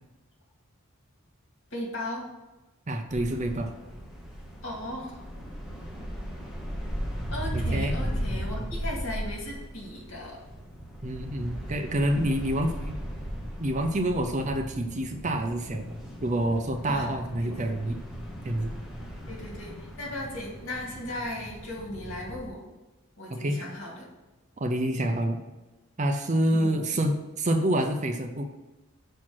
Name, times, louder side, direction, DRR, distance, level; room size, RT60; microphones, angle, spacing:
voice 1, 1.7-2.3 4.6-5.1 7.3-10.4 12.1-12.3 16.9-17.1 17.4-17.8 19.3-22.7 23.2-24.1 26.5-26.8, left 1 dB, 55° left, -3 dB, 2.2 m, -37 dB
voice 2, 2.9-3.7 7.5-8.0 11.0-13.0 13.6-15.9 16.2-18.0 18.4-18.7 23.3-23.6 24.6-25.4 26.0-28.4, right 1 dB, 30° right, 6 dB, 0.5 m, -27 dB
sound 1, 3.1-22.5, equal, ahead, 0.9 m, -37 dB
6.0 x 4.5 x 6.1 m, 1.1 s
head